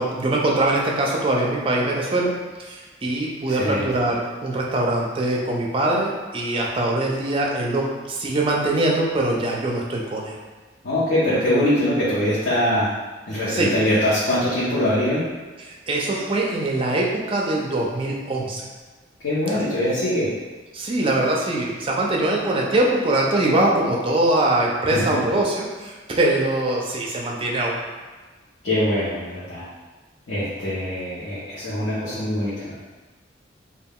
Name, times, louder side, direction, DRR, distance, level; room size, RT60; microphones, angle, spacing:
voice 1, 0.0-2.3 2.6-10.4 13.5-13.7 15.6-18.7 19.5-19.6 20.7-27.8, right 2 dB, 30° right, -2 dB, 0.4 m, -22 dB
voice 2, 3.5-3.9 10.8-12.9 13.3-15.2 19.2-20.3 24.9-25.2 28.6-29.6 30.3-32.7, left 1 dB, 85° left, -11 dB, 0.8 m, -23 dB
2.3 x 2.3 x 3.5 m, 1.3 s
head